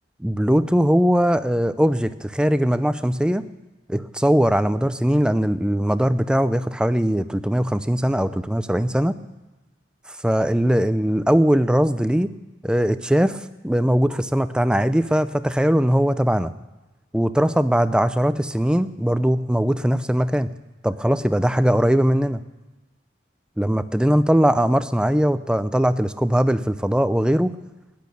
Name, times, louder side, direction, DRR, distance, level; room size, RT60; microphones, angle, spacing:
voice 1, 0.2-3.4 3.9-9.2 10.1-12.3 12.6-16.5 17.1-20.5 20.8-22.4 23.6-27.6, equal, 5° right, 12 dB, 0.5 m, -20 dB
14.0 x 10.5 x 9.3 m, 1.1 s
head